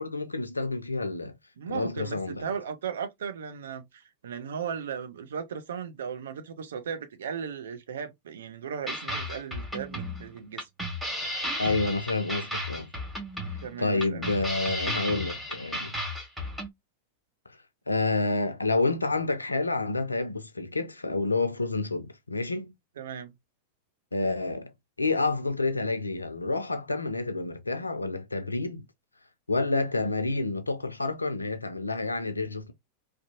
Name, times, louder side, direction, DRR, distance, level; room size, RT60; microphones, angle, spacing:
voice 1, 0.0-1.4 1.7-2.5 11.6-12.9 13.8-15.9 17.9-22.7 24.1-24.7 25.0-28.9 29.5-32.7, left 3 dB, 80° left, 0.4 m, -29 dB
voice 2, 1.6-10.7 13.6-14.4 23.0-23.3, right 7 dB, 65° right, 0.5 m, -36 dB
sound 1, 8.9-16.7, equal, 5° right, 1.3 m, -34 dB
2.5 x 2.3 x 2.5 m
figure-of-eight pair, 90°, 0 cm